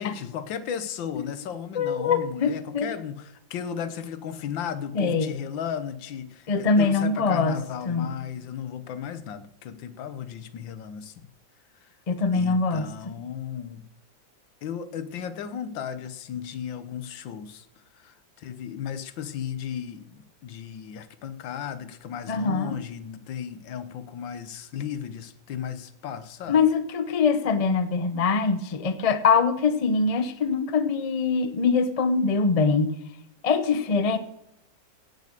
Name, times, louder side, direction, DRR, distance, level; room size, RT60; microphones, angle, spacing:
voice 1, 0.0-11.3 11.7-11.9 12.3-13.9 14.6-26.6, left 8 dB, 80° left, 13 dB, 1.6 m, -35 dB
voice 2, 1.7-2.9 4.9-5.3 6.5-7.5 7.9-8.1 12.1-12.8 22.3-22.8 26.5-32.9 33.4-34.2, left 4 dB, 55° left, 12 dB, 0.4 m, -23 dB
17.0 x 6.6 x 6.6 m, 0.77 s
omnidirectional pair, 2.1 m